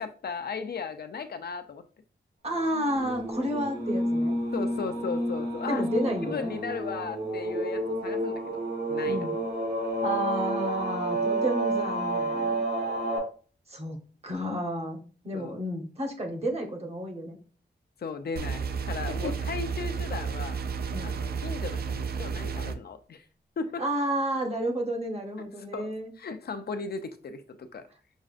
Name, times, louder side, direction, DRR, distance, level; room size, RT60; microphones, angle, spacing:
voice 1, 0.0-1.8 4.5-5.9 6.2-8.6 8.9-9.2 15.3-15.6 18.0-20.6 21.0-23.2 23.6-23.8 25.7-25.9 26.2-27.8, left 5 dB, 65° left, 0.5 m, -36 dB
voice 2, 2.4-4.3 5.7-6.5 9.0-9.3 10.0-12.6 13.7-14.0 14.2-15.0 15.2-17.4 19.2-19.3 20.9-21.1 23.8-26.1, right 1 dB, 35° right, 1.0 m, -31 dB
sound 1, 2.9-13.2, right 1 dB, 80° right, 1.7 m, -30 dB
sound 2, 18.4-22.8, right 5 dB, 65° right, 0.4 m, -32 dB
6.2 x 2.4 x 2.4 m
wide cardioid pair, 125°, 18 cm